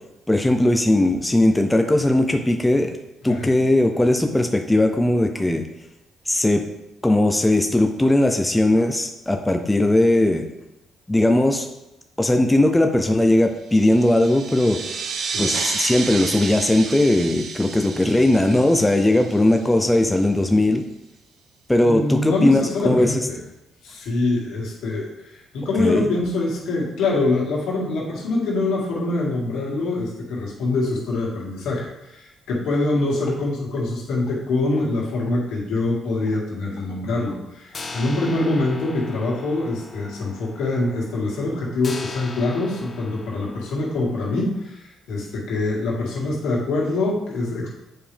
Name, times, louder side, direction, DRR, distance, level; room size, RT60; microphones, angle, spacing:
voice 1, 0.3-3.0 3.2-5.6 6.3-6.6 7.0-10.5 11.1-11.7 12.2-14.8 15.4-20.8 21.7-23.2 25.8-26.0, left 1 dB, 10° left, 5 dB, 0.6 m, -18 dB
sound 1, 13.7-20.0, right 5 dB, 70° right, 0.7 m, -31 dB
voice 2, 21.8-23.4 23.8-47.7, left 2 dB, 85° left, -3 dB, 2.1 m, -24 dB
sound 2, 32.8-32.9 33.3-33.4 33.8-33.9 34.3-34.4 34.8-34.9 35.3-35.4 35.8-35.9 36.3-36.4 36.8-36.9 37.3-37.4 37.7-44.4, left 3 dB, 40° left, 0.8 m, -40 dB
7.6 x 4.8 x 3.4 m, 0.90 s
cardioid pair, 90°, 0 cm